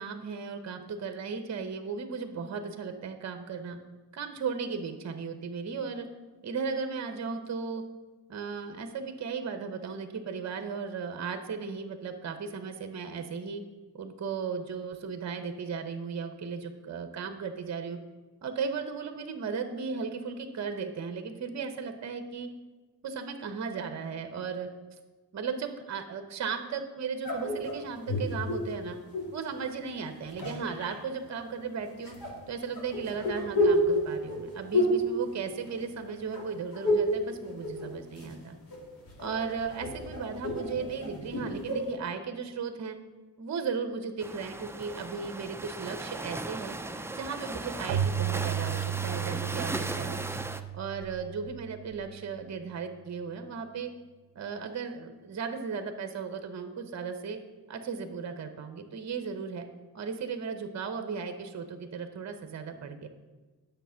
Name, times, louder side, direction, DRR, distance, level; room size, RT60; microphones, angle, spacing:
voice 1, 0.0-3.8 4.1-6.1 6.4-7.8 8.3-13.6 13.9-18.0 18.4-22.5 23.0-24.7 25.3-29.0 29.3-32.2 32.5-38.5 39.2-43.0 43.4-46.8 47.1-50.2 50.7-53.9 54.3-57.4 57.7-59.6 59.9-63.1, right 5 dB, 40° right, 7 dB, 1.0 m, -36 dB
sound 1, 27.2-29.4 30.1-31.0 32.0-36.1 36.3-37.2 37.5-38.4 38.7-41.9, equal, 55° left, 2.7 m, -30 dB
sound 2, 44.2-50.6, right 2 dB, 5° right, 0.4 m, -37 dB
Keyboard (musical), 47.9-52.4, right 9 dB, 65° right, 0.8 m, -34 dB
9.1 x 6.8 x 5.7 m, 1.2 s
cardioid pair, 95°, 41 cm